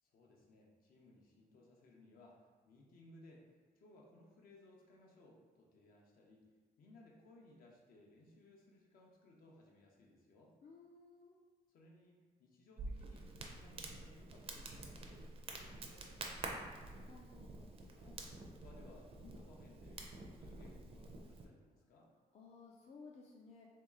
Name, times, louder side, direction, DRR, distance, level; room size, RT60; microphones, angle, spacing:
voice 1, 0.0-6.5 6.8-10.5 11.7-17.1 17.9-22.1, left 2 dB, 70° left, -2 dB, 0.8 m, -63 dB
voice 2, 10.6-11.4 17.1-18.0 22.3-23.7, left 4 dB, 45° left, -2 dB, 0.4 m, -58 dB
Crackle, 12.8-21.4, right 2 dB, 40° right, 0.5 m, -49 dB
3.1 x 2.8 x 3.6 m, 1.4 s
cardioid pair, 135°, 16 cm